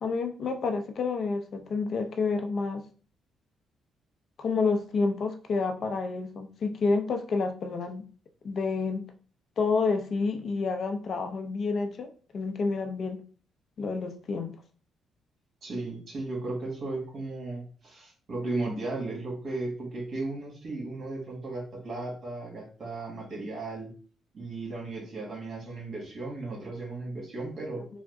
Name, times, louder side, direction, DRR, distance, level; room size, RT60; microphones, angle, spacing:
voice 1, 0.0-2.8 4.4-8.1 8.4-9.1 9.6-13.2 13.8-14.5, left 4 dB, 55° left, 5 dB, 0.5 m, -29 dB
voice 2, 15.6-23.9 24.3-27.8, right 2 dB, 50° right, -2 dB, 1.8 m, -35 dB
3.5 x 2.1 x 3.5 m, 0.40 s
cardioid pair, 90°, 0 cm